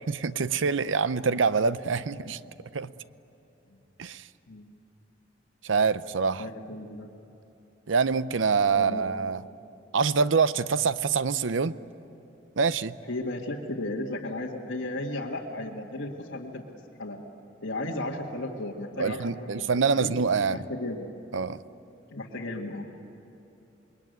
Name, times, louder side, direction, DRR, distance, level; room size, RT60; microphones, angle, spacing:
voice 1, 0.0-2.4 2.7-2.9 4.0-4.2 5.6-6.5 7.9-9.4 9.9-11.7 12.6-12.9 19.0-20.6 21.3-21.6, right 5 dB, 85° right, 15 dB, 0.6 m, -25 dB
voice 2, 6.4-7.1 8.7-9.1 13.0-16.6 17.0-17.2 17.6-20.1 20.5-21.1 22.1-22.9, left 1 dB, 80° left, -4 dB, 1.9 m, -35 dB
28.0 x 21.5 x 9.3 m, 2.9 s
head